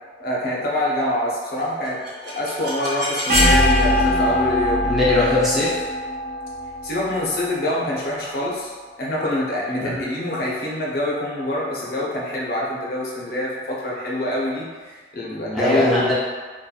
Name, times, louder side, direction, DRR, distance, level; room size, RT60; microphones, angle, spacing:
voice 1, 0.2-4.8 5.3-5.4 6.8-16.1, left 1 dB, 50° left, -4 dB, 0.5 m, -25 dB
sound 1, 1.9-7.7, left 1 dB, 65° right, 0.7 m, -21 dB
voice 2, 4.8-5.7 9.8-10.0 15.5-16.1, left 2 dB, ahead, -9 dB, 0.4 m, -20 dB
2.7 x 2.2 x 2.2 m, 1.4 s
head